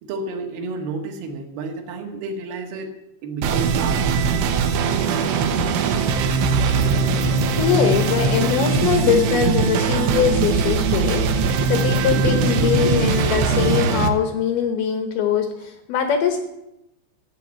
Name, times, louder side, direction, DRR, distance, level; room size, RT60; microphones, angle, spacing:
voice 1, 0.0-2.9 3.2-4.3 4.7-4.9, right 3 dB, 55° right, 3 dB, 2.7 m, -31 dB
sound 1, 3.4-14.1, right 4 dB, 75° right, 2.7 m, -20 dB
voice 2, 7.6-16.4, left 8 dB, 80° left, 7 dB, 2.2 m, -22 dB
14.5 x 8.0 x 8.4 m, 0.90 s
omnidirectional pair, 5.9 m